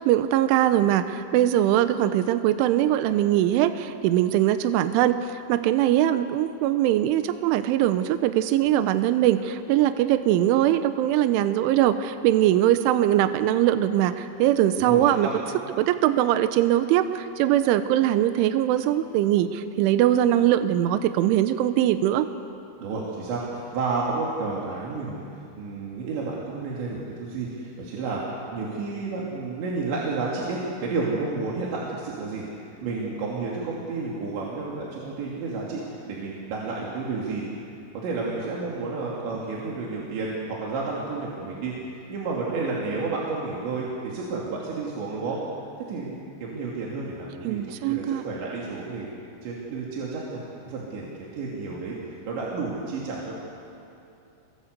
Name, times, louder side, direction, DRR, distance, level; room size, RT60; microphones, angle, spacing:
voice 1, 0.0-15.3 15.8-22.3 47.4-48.2, right 12 dB, 85° right, 10 dB, 3.2 m, -21 dB
voice 2, 14.8-15.3 22.8-28.2 28.5-32.4 32.8-37.4 37.9-45.4 45.9-46.2 46.4-49.1 49.4-53.4, right 3 dB, 65° right, -4 dB, 4.9 m, -31 dB
28.0 x 23.5 x 8.1 m, 2.7 s
omnidirectional pair, 5.6 m